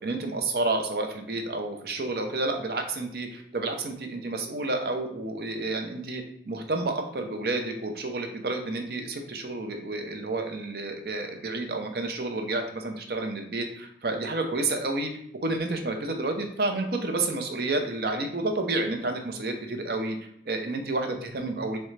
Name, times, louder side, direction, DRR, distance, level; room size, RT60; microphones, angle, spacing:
voice 1, 0.0-15.1 15.4-20.2 20.5-21.8, right 2 dB, 55° right, 5 dB, 0.6 m, -30 dB
3.7 x 3.2 x 3.2 m, 0.72 s
head